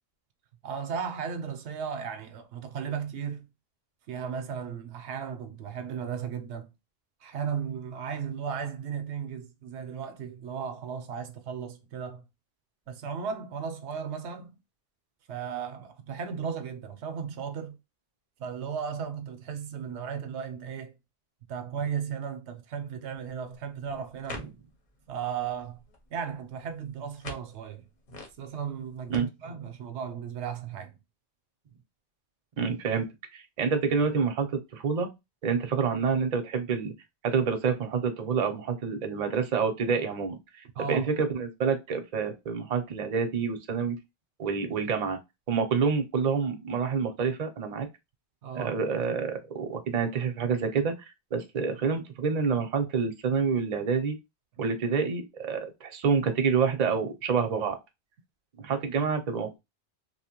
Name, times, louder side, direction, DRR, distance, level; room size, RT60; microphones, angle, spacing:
voice 1, 0.6-3.5 4.1-6.7 7.2-12.2 12.9-14.6 15.3-17.8 18.4-20.9 21.5-24.5 25.1-25.8 26.1-27.9 28.4-31.0 40.7-41.1 48.4-48.8 59.0-59.1, right 7 dB, 85° right, 0.9 m, -35 dB
sound 1, 23.1-29.2, left 1 dB, 45° left, 0.8 m, -48 dB
voice 2, 32.6-33.1 33.3-35.1 35.4-36.9 37.2-44.0 44.4-45.2 45.5-47.9 48.5-51.1 51.3-54.2 54.6-57.8 58.6-59.6, right 5 dB, 45° right, 0.6 m, -28 dB
2.8 x 2.1 x 2.9 m
omnidirectional pair, 1.1 m